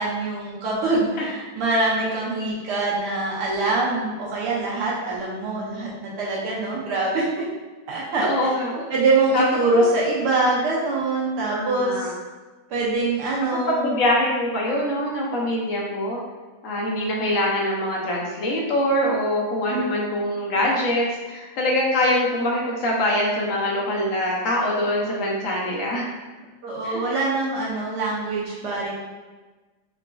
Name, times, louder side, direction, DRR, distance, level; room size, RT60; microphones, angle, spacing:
voice 1, 0.0-7.4 7.9-12.1 12.7-13.9 19.7-19.8 26.6-28.9, right 2 dB, 85° right, -5 dB, 1.3 m, -24 dB
voice 2, 8.2-8.9 9.3-9.4 9.7-9.8 11.5-12.1 13.7-16.2 16.6-26.1 26.8-27.0, left 1 dB, 60° left, -3 dB, 0.9 m, -24 dB
3.8 x 2.4 x 2.3 m, 1.3 s
omnidirectional pair, 1.7 m